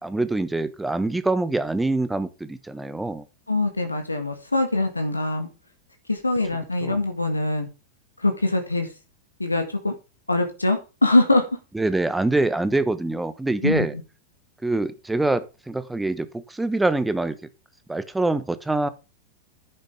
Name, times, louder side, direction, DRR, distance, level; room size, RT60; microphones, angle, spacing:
voice 1, 0.0-3.2 6.8-7.0 11.7-13.9 14.6-17.4 17.9-18.9, right 2 dB, 5° right, 1.1 m, -25 dB
voice 2, 3.5-5.5 6.1-7.7 8.2-8.9 9.4-9.9 10.3-11.5 13.6-13.9, left 2 dB, 80° left, 1.9 m, -23 dB
10.5 x 10.0 x 3.5 m
figure-of-eight pair, 90°, 0 cm